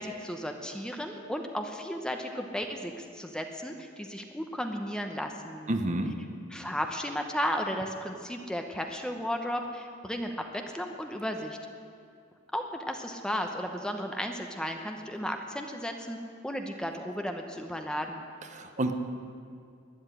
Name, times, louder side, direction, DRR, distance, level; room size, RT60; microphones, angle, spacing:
voice 1, 0.0-5.7 6.5-11.6 12.5-16.2 16.4-18.2, equal, 5° left, 4 dB, 0.8 m, -34 dB
voice 2, 5.7-6.1 18.5-18.9, right 1 dB, 35° right, 6 dB, 0.9 m, -29 dB
13.0 x 9.8 x 9.9 m, 2.3 s
head